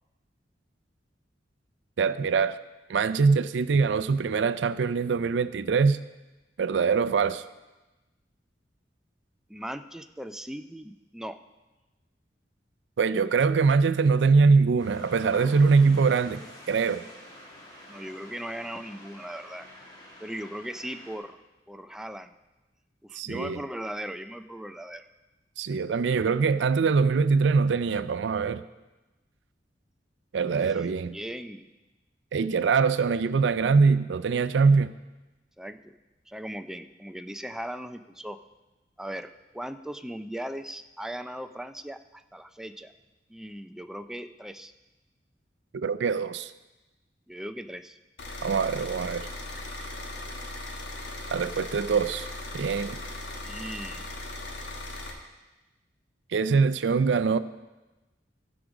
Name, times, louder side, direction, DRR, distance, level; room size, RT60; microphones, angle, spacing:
voice 1, 2.0-2.6 2.9-6.0 6.6-7.4 13.0-17.0 23.1-23.6 25.6-28.6 30.3-31.2 32.3-34.9 45.7-46.5 48.4-49.3 51.3-52.3 52.5-53.0 56.3-57.4, right 5 dB, 80° right, 14 dB, 0.4 m, -23 dB
voice 2, 9.5-11.4 17.9-19.7 20.2-21.4 21.7-22.3 23.0-25.1 30.6-31.7 35.6-35.9 36.3-38.4 39.0-42.9 43.3-44.7 47.3-48.0 53.4-54.1, right 1 dB, 5° right, 8 dB, 0.3 m, -38 dB
sound 1, 14.8-21.2, left 1 dB, 25° left, 2.2 m, -48 dB
sound 2, 48.2-55.1, left 2 dB, 85° left, 1.5 m, -38 dB
15.0 x 5.1 x 6.0 m, 1.1 s
head